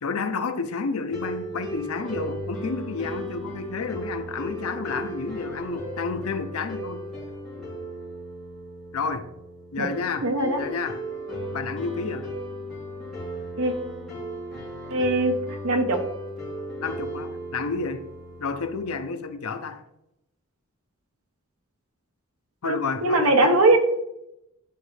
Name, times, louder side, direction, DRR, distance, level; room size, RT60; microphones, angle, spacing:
voice 1, 0.0-7.0 8.9-9.3 9.7-10.3 10.5-11.0 11.5-12.3 16.8-18.0 18.4-19.8 22.6-23.6, left 4 dB, 80° left, 9 dB, 0.7 m, -30 dB
sound 1, 1.1-19.1, equal, ahead, 2.7 m, -36 dB
voice 2, 10.2-10.6 13.6-13.7 14.9-16.0 22.6-23.8, right 2 dB, 75° right, 5 dB, 1.1 m, -21 dB
10.5 x 4.3 x 3.3 m, 0.87 s
head